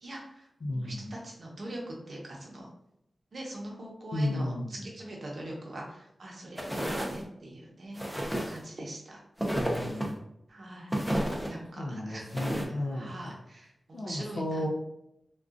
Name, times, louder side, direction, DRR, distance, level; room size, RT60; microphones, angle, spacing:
voice 1, 0.0-0.5 0.7-2.7 3.3-4.5 4.8-8.0 8.5-9.2 10.5-10.9 11.4-12.3 12.7-14.7, right 1 dB, 65° right, -2 dB, 0.8 m, -42 dB
voice 2, 0.6-1.1 4.1-4.9 9.5-10.2 11.8-13.4 13.9-14.7, left 1 dB, 65° left, -1 dB, 0.5 m, -33 dB
sound 1, 6.6-7.2 8.0-8.6 9.4-10.1 10.9-11.5 12.3-12.6, equal, ahead, 0.5 m, -31 dB
3.6 x 2.3 x 2.4 m, 0.81 s
wide cardioid pair, 105°, 0 cm